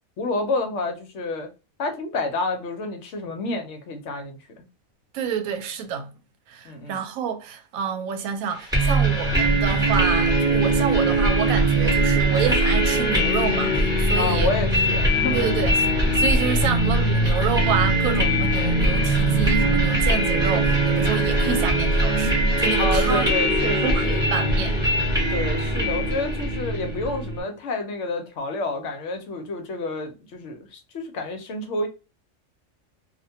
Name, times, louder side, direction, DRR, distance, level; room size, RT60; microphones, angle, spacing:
voice 1, 0.2-1.5 1.8-4.7 6.6-7.0 14.1-15.5 22.8-24.2 25.3-31.9, left 2 dB, 65° left, 0.9 m, -29 dB
voice 2, 5.1-6.1 6.5-14.5 15.3-15.8 16.2-23.3 23.8-24.8, right 7 dB, 85° right, 1.0 m, -28 dB
sound 1, 8.7-27.4, right 1 dB, 5° right, 0.7 m, -21 dB
2.4 x 2.1 x 2.6 m
omnidirectional pair, 1.4 m